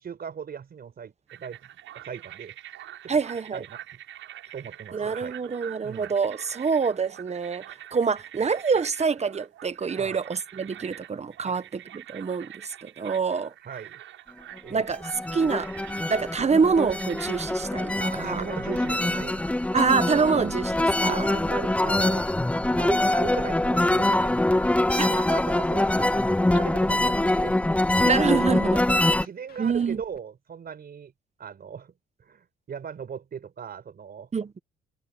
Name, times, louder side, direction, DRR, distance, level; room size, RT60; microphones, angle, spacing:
voice 1, 0.0-1.7 1.9-2.6 3.0-3.2 3.5-4.0 4.5-5.4 5.8-6.1 10.0-10.2 11.4-11.6 13.6-14.0 14.6-14.8 18.0-19.8 21.1-22.3 22.8-24.7 25.0-27.6 27.9-28.1 29.1-31.1 31.4-31.9 32.2-34.3, right 7 dB, 50° right, 5.1 m, -38 dB
sound 1, 1.3-19.5, right 12 dB, 80° right, 7.8 m, -45 dB
voice 2, 3.1-3.6 4.9-7.6 7.9-11.6 11.9-13.5 14.7-15.0 15.3-15.7 16.1-18.4 19.7-21.3 25.0-25.1 28.0-28.8 29.6-30.0 34.3-34.5, right 5 dB, 35° right, 1.3 m, -26 dB
sound 2, 14.8-29.3, left 1 dB, 5° left, 0.6 m, -24 dB
Scratching (performance technique), 20.1-20.2 20.5-20.8 21.4-22.3 22.7-22.8 23.1-23.5 23.9-24.8 25.3-25.4 25.8-26.1 26.5-27.5 27.9-28.0 28.3-30.2, left 7 dB, 50° left, 2.7 m, -51 dB
cardioid pair, 90°, 20 cm